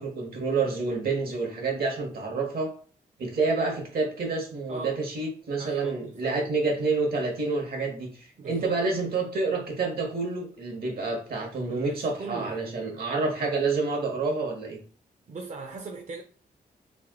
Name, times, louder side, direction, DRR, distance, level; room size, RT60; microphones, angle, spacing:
voice 1, 0.0-2.7 3.2-14.8, right 3 dB, 75° right, 1.3 m, -28 dB
voice 2, 5.6-6.4 8.4-8.8 11.6-12.8 15.3-16.2, right 4 dB, 50° right, 0.5 m, -39 dB
3.4 x 2.8 x 3.7 m
cardioid pair, 100°, 16 cm